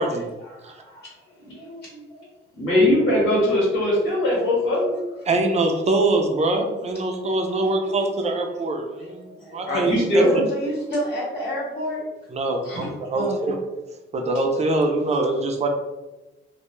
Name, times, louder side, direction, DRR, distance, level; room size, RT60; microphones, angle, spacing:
voice 1, 0.0-2.3 4.0-5.4 7.2-12.0 12.6-13.4, equal, 55° left, -6 dB, 0.8 m, -33 dB
voice 2, 2.6-4.9 9.7-10.4, left 1 dB, 90° left, -6 dB, 1.0 m, -20 dB
voice 3, 5.2-9.3 9.5-10.4 12.3-13.6 14.1-15.7, right 2 dB, 35° right, 3 dB, 0.4 m, -23 dB
2.2 x 2.0 x 2.9 m, 1.1 s
cardioid pair, 90°, 20 cm